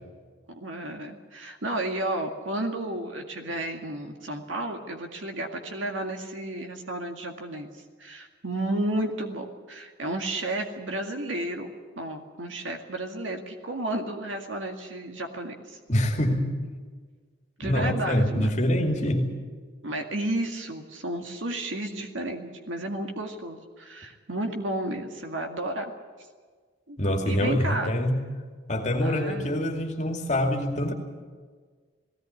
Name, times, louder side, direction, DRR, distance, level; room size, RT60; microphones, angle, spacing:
voice 1, 0.5-7.7 8.0-11.7 12.0-15.8 17.6-18.5 19.8-25.9 26.9-27.0 27.3-27.9 29.0-29.5, right 1 dB, 80° right, 3 dB, 2.1 m, -32 dB
voice 2, 15.9-16.6 17.6-19.3 27.0-28.2 28.7-30.9, left 1 dB, 35° left, 2 dB, 2.5 m, -25 dB
18.5 x 17.5 x 9.7 m, 1.6 s
head